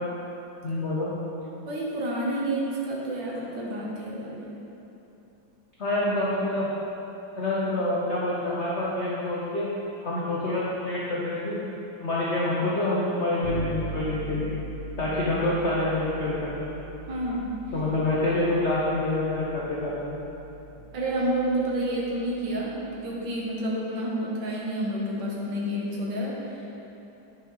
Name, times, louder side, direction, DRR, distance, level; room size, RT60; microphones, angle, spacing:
voice 1, 0.6-1.1 5.8-6.7 7.3-9.7 10.0-11.6 12.0-14.6 15.0-16.7 17.7-20.2, left 2 dB, 70° left, -7 dB, 0.6 m, -27 dB
voice 2, 1.7-4.5 17.1-17.5 20.9-26.7, right 1 dB, 60° right, -4 dB, 1.6 m, -29 dB
Bass guitar, 13.4-23.1, right 2 dB, 45° left, 1.4 m, -41 dB
8.5 x 4.6 x 3.0 m, 3.0 s
omnidirectional pair, 2.3 m